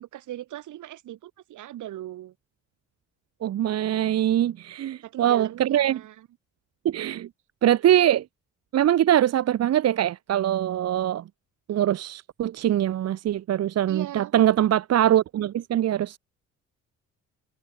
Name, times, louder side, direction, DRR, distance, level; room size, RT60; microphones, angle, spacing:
voice 1, 0.0-2.3 5.0-6.3 13.9-14.3, right 13 dB, 80° right, 4.0 m, -38 dB
voice 2, 3.4-6.0 6.8-7.3 7.6-8.2 8.7-11.2 11.7-16.2, right 11 dB, 55° right, 0.8 m, -23 dB
cardioid pair, 90°, 30 cm